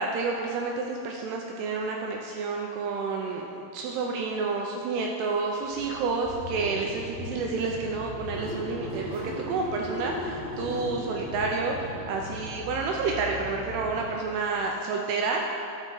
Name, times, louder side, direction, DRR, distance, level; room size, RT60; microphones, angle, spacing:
voice 1, 0.0-15.8, right 4 dB, 80° right, 0 dB, 2.5 m, -30 dB
Car / Engine starting, 5.5-14.3, left 1 dB, 40° right, 1.8 m, -39 dB
sound 1, 6.5-14.1, equal, 55° left, 1.1 m, -44 dB
11.5 x 6.1 x 3.8 m, 2.9 s
omnidirectional pair, 4.8 m